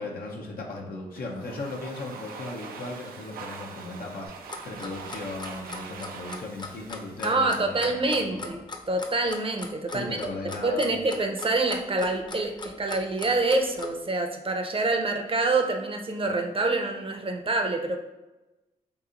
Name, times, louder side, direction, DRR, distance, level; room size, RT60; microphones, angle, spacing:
voice 1, 0.0-8.6 9.9-11.0, left 3 dB, 80° left, -1 dB, 0.8 m, -37 dB
Domestic sounds home sounds, 1.2-8.0, right 5 dB, 85° right, 0.4 m, -43 dB
Clock, 4.2-13.9, left 3 dB, 30° left, 0.6 m, -39 dB
voice 2, 7.2-8.6 8.9-10.2 10.6-18.0, right 2 dB, 35° right, 5 dB, 0.6 m, -26 dB
3.0 x 2.7 x 3.8 m, 1.0 s
supercardioid pair, 45°, 15 cm